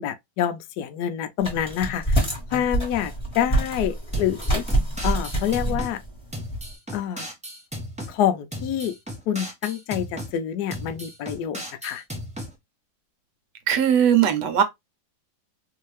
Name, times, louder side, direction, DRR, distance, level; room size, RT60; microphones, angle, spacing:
voice 1, 0.0-4.6 5.0-6.0 6.9-7.3 8.1-8.9 9.3-12.0, left 10 dB, 70° left, 1.0 m, -27 dB
sound 1, 1.4-6.7, right 1 dB, 15° left, 1.4 m, -26 dB
sound 2, 4.1-5.9 6.3-8.1 8.5-10.3 10.7-12.5, equal, 10° right, 0.4 m, -35 dB
voice 2, 13.7-14.6, right 9 dB, 65° right, 1.3 m, -19 dB
3.1 x 2.8 x 3.1 m
omnidirectional pair, 2.1 m